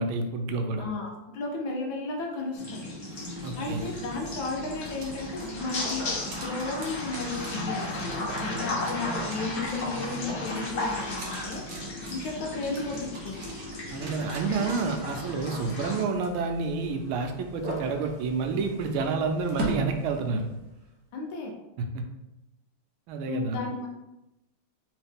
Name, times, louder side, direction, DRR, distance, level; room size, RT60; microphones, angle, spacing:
voice 1, 0.0-0.9 3.4-3.8 13.9-20.5 23.1-23.6, right 4 dB, 85° right, 5 dB, 1.4 m, -29 dB
voice 2, 0.8-2.9 3.6-6.1 6.4-11.7 12.1-13.4 21.1-21.5 23.2-23.9, left 3 dB, 75° left, 0 dB, 1.5 m, -34 dB
sound 1, 2.5-16.0, left 2 dB, 55° left, 1.4 m, -35 dB
sound 2, 2.8-20.9, right 3 dB, 55° right, 1.1 m, -40 dB
3.6 x 3.1 x 3.4 m, 0.92 s
omnidirectional pair, 2.2 m